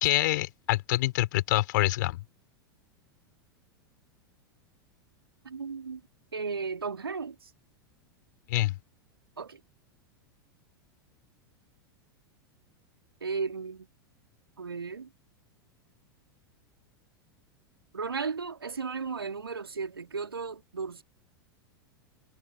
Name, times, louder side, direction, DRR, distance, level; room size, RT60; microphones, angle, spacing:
voice 1, 0.0-2.2 8.5-8.7, left 17 dB, 55° left, 3.5 m, -26 dB
voice 2, 5.4-6.0 6.3-7.5 9.4-9.6 13.2-13.9 14.6-15.1 17.9-21.0, right 5 dB, 75° right, 2.4 m, -35 dB
figure-of-eight pair, 90°, 12 cm